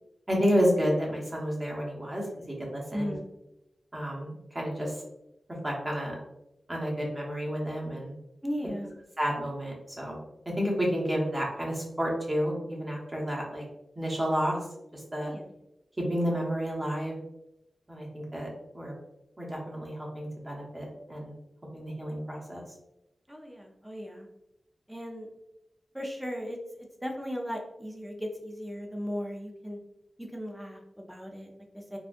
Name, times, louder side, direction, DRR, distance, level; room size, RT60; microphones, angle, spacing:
voice 1, 0.3-2.2 2.6-3.1 3.9-5.0 5.6-6.2 6.7-8.1 9.2-10.2 10.6-13.6 14.0-14.6 14.9-15.3 16.0-17.1 17.9-18.5 18.7-18.9 19.4-21.3 21.7-22.6, equal, 20° right, -3 dB, 1.0 m, -30 dB
voice 2, 2.9-3.2 8.4-8.9 15.3-15.5 23.3-24.3 24.9-25.3 25.9-26.6 27.0-29.8 30.2-32.0, equal, 5° right, 0 dB, 0.6 m, -37 dB
3.7 x 2.3 x 2.5 m, 0.89 s
wide cardioid pair, 85°, 0 cm